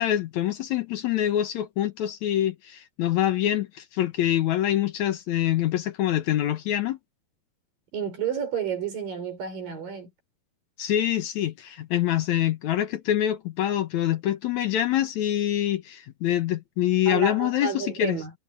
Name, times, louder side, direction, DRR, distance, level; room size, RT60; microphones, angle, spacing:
voice 1, 0.0-7.0 10.8-18.2, left 12 dB, 70° left, 1.9 m, -25 dB
voice 2, 7.9-10.1 17.1-18.3, right 7 dB, 60° right, 6.7 m, -31 dB
omnidirectional pair, 4.4 m